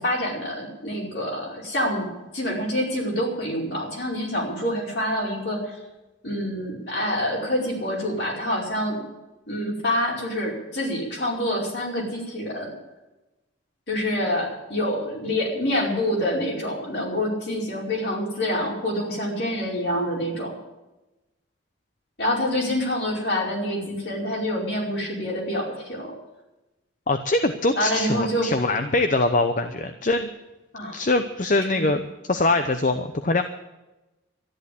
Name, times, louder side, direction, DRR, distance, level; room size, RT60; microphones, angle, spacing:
voice 1, 0.0-5.8 6.2-9.1 9.5-12.7 13.9-20.5 22.2-26.1 27.8-28.5 30.7-31.0 31.7-31.9, left 1 dB, 60° left, -2 dB, 5.0 m, -26 dB
voice 2, 27.1-30.3 30.9-32.0 32.3-33.4, left 2 dB, 40° left, 8 dB, 0.8 m, -23 dB
13.0 x 11.0 x 8.5 m, 1.0 s
head